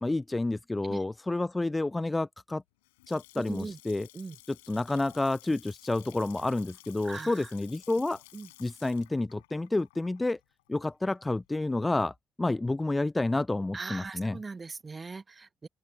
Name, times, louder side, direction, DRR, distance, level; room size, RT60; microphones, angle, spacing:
voice 1, 0.0-2.6 3.1-4.1 4.7-8.2 8.6-10.4 10.7-14.4, left 2 dB, 20° left, 0.3 m, -29 dB
Water tap faucet / Sink (filling or washing) / Splash splatter, 2.6-11.5, left 21 dB, 85° left, 6.2 m, -55 dB
voice 2, 3.3-3.8 4.1-4.4 7.0-7.5 8.3-8.5 13.7-15.7, right 4 dB, 35° right, 0.9 m, -40 dB
open air
hypercardioid pair, 45°, 0 cm